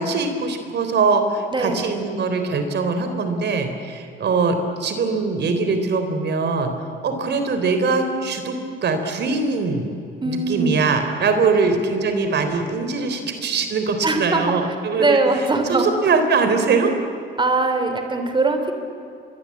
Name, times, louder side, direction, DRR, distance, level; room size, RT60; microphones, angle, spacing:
voice 1, 0.0-6.7 7.0-9.9 10.2-15.2 15.7-16.9, right 4 dB, 60° right, 7 dB, 3.7 m, -22 dB
voice 2, 1.5-1.9 10.2-10.7 11.5-11.7 14.0-14.5 15.0-15.9 17.4-18.7, right 3 dB, 25° right, 6 dB, 3.2 m, -21 dB
25.5 x 22.0 x 8.6 m, 2.5 s
cardioid pair, 90°, 20 cm